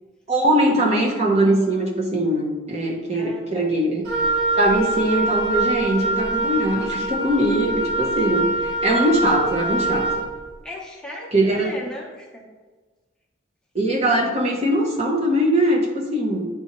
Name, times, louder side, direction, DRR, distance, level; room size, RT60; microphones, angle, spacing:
voice 1, 0.3-4.1 4.6-10.2 11.3-11.7 13.7-16.5, right 1 dB, 35° right, -1 dB, 0.9 m, -21 dB
voice 2, 3.1-3.8 10.6-12.4, left 1 dB, 5° left, -4 dB, 1.0 m, -37 dB
Wind instrument woodwind instrument, 4.1-10.3, right 2 dB, 75° right, 1.7 m, -24 dB
9.4 x 3.5 x 3.1 m, 1.4 s
head